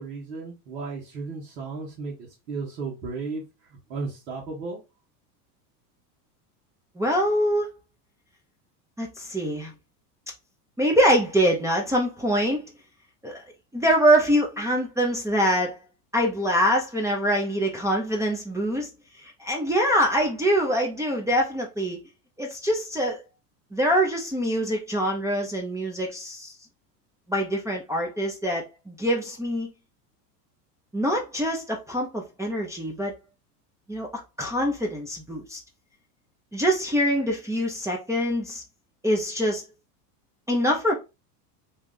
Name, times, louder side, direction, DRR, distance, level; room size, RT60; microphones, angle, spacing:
voice 1, 0.0-4.8, right 4 dB, 80° right, 1.3 m, -35 dB
voice 2, 7.0-7.7 9.0-9.7 10.8-12.6 13.2-13.4 13.7-15.8 16.1-18.9 19.2-22.0 22.4-23.2 23.7-26.5 27.3-29.7 30.9-33.1 33.9-34.1 34.4-35.6 36.5-38.6 39.0-39.6 40.5-40.9, equal, 5° right, 0.5 m, -24 dB
2.8 x 2.4 x 3.6 m
hypercardioid pair, 100°, 48 cm